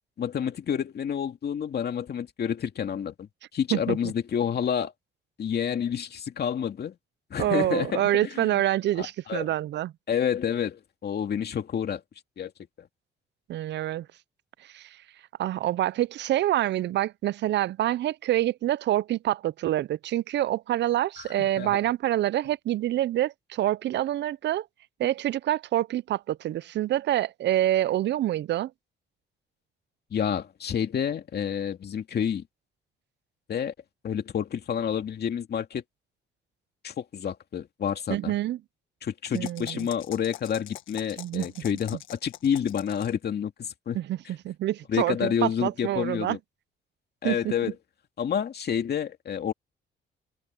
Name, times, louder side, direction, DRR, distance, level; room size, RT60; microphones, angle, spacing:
voice 1, 0.2-4.9 5.4-7.0 7.3-8.6 9.0-9.5 10.1-12.0 12.4-12.5 12.8-12.9 21.2-21.8 30.1-32.4 33.5-33.7 34.0-35.8 36.8-38.3 39.0-44.0 44.9-46.4 47.2-47.7 48.2-49.5, left 8 dB, 55° left, 2.4 m, -29 dB
voice 2, 7.4-9.9 13.5-14.1 14.7-15.0 15.4-24.7 25.0-28.7 38.1-38.6 39.3-39.9 41.2-41.5 43.9-46.4 47.2-47.5, right 13 dB, 60° right, 0.5 m, -26 dB
sound 1, 39.3-43.2, left 13 dB, 90° left, 1.5 m, -44 dB
cardioid pair, 90°, 20 cm